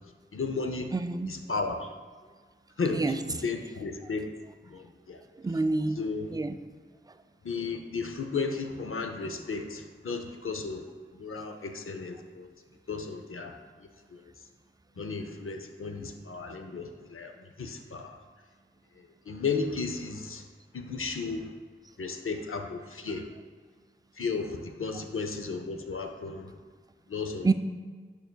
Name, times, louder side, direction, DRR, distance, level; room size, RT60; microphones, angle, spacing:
voice 1, 0.3-0.9 1.3-1.9 2.8-4.3 4.7-5.2 6.0-6.3 7.4-10.9 11.1-12.5 12.9-13.5 14.1-14.2 15.0-17.3 17.6-18.2 19.3-20.4 20.7-21.5 22.0-23.3 24.2-26.5 27.1-27.5, left 4 dB, 80° left, 5 dB, 0.5 m, -34 dB
voice 2, 0.9-1.3 2.9-3.2 5.4-6.0 6.3-6.6 27.4-27.5, right 3 dB, 20° right, 9 dB, 0.3 m, -27 dB
8.9 x 6.7 x 2.2 m, 1.5 s
wide cardioid pair, 50°, 21 cm